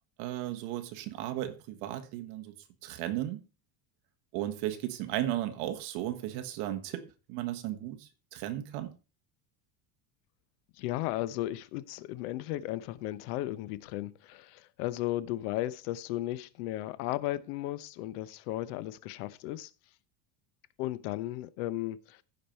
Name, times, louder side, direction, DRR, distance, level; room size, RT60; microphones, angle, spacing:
voice 1, 0.2-2.5 2.8-3.4 4.3-8.9, right 13 dB, 60° right, 1.5 m, -35 dB
voice 2, 10.8-19.7 20.8-22.2, left 15 dB, 85° left, 1.0 m, -35 dB
15.0 x 5.3 x 4.4 m
cardioid pair, 165°, 44 cm